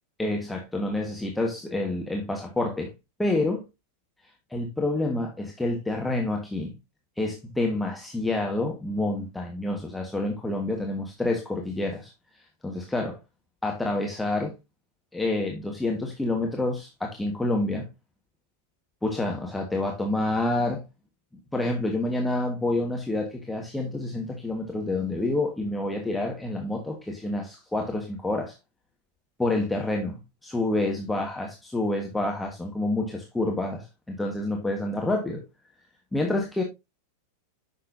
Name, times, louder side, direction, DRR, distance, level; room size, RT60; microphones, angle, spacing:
voice 1, 0.2-2.9 3.2-3.6 4.2-6.8 7.2-13.2 13.6-14.5 15.1-17.9 19.0-20.8 21.5-28.5 29.4-35.4 36.1-36.6, left 2 dB, 5° left, 1.5 m, -28 dB
9.9 x 6.5 x 2.7 m
figure-of-eight pair, 90°, 0 cm